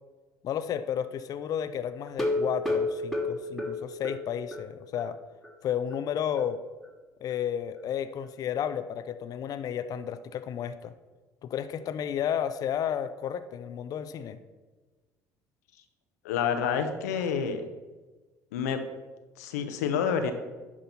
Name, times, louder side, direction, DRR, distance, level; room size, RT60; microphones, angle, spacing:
voice 1, 0.4-5.2 5.6-6.6 7.2-10.9 11.4-14.4, left 9 dB, 45° left, 12 dB, 0.5 m, -32 dB
sound 1, 2.1-4.7 5.0-5.1 5.4-5.5 5.9-6.0, left 2 dB, ahead, 1.6 m, -30 dB
voice 2, 16.2-17.6 18.5-18.8 19.4-20.3, left 7 dB, 75° left, 7 dB, 0.8 m, -28 dB
11.0 x 3.7 x 5.6 m, 1.3 s
hypercardioid pair, 60°, 8 cm